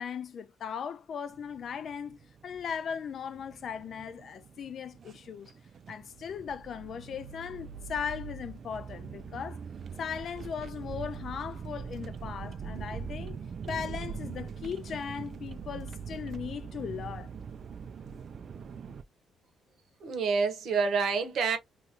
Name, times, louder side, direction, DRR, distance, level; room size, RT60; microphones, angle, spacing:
voice 1, 0.0-2.2 2.4-5.5 5.9-9.6 10.0-13.4 13.7-17.3, left 7 dB, 60° left, 0.4 m, -38 dB
sound 1, 1.3-19.0, right 6 dB, 55° right, 0.3 m, -42 dB
voice 2, 20.0-21.6, right 5 dB, 70° right, 0.9 m, -27 dB
2.7 x 2.4 x 2.8 m
cardioid pair, 90°, 0 cm